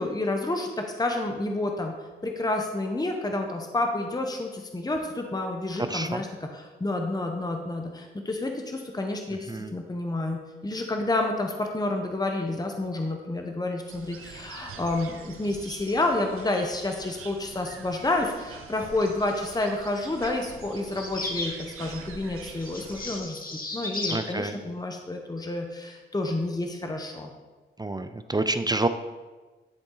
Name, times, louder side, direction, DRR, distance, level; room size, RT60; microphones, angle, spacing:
voice 1, 0.0-1.9 2.2-27.3, left 2 dB, 20° left, 3 dB, 0.9 m, -29 dB
voice 2, 5.8-6.2 9.5-9.7 24.1-24.5 27.8-28.9, right 2 dB, 20° right, 10 dB, 0.4 m, -28 dB
sound 1, 13.9-23.2, right 5 dB, 90° right, 0.7 m, -45 dB
sound 2, 20.9-21.6 22.6-24.3, left 2 dB, 45° left, 1.1 m, -34 dB
10.5 x 3.8 x 3.9 m, 1.3 s
supercardioid pair, 45°, 21 cm